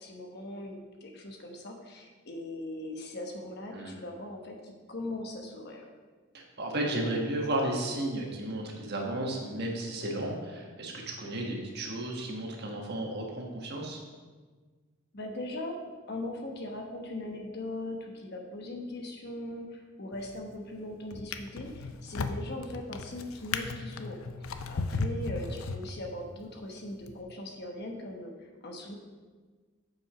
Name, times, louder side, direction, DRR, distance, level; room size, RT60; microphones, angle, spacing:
voice 1, 0.0-5.8 11.5-11.6 15.1-15.8 16.1-24.2 24.7-29.0, left 1 dB, 50° left, 2 dB, 1.2 m, -40 dB
voice 2, 6.3-14.0, right 1 dB, 50° right, 0 dB, 1.4 m, -33 dB
Drawer open or close, 20.1-20.6 21.1-26.3 27.0-27.2, left 3 dB, 80° left, 0.5 m, -36 dB
7.5 x 6.0 x 5.1 m, 1.4 s
head